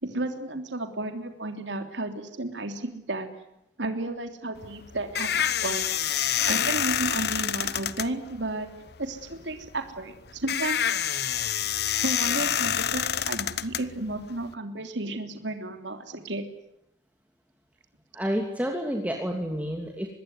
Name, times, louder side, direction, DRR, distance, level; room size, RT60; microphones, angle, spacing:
voice 1, 0.0-3.3 3.8-6.0 6.4-8.7 9.0-10.8 12.0-16.5, right 2 dB, 80° right, 6 dB, 3.3 m, -33 dB
sound 1, 4.6-14.5, left 9 dB, 60° left, 1.0 m, -28 dB
voice 2, 18.1-20.1, equal, 10° right, 2 dB, 2.7 m, -29 dB
25.5 x 21.0 x 9.5 m, 0.83 s
head